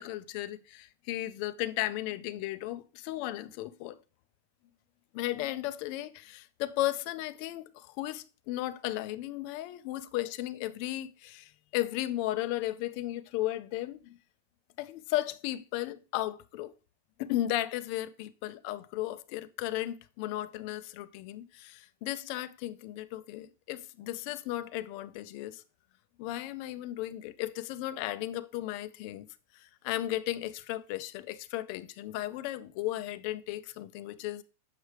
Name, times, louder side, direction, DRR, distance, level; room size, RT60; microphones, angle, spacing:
voice 1, 0.0-4.0 5.1-14.2 14.8-16.7 17.2-25.6 26.2-29.3 29.5-34.4, left 15 dB, 35° left, 0.3 m, -35 dB
6.4 x 4.7 x 3.3 m
supercardioid pair, 175°, 0 cm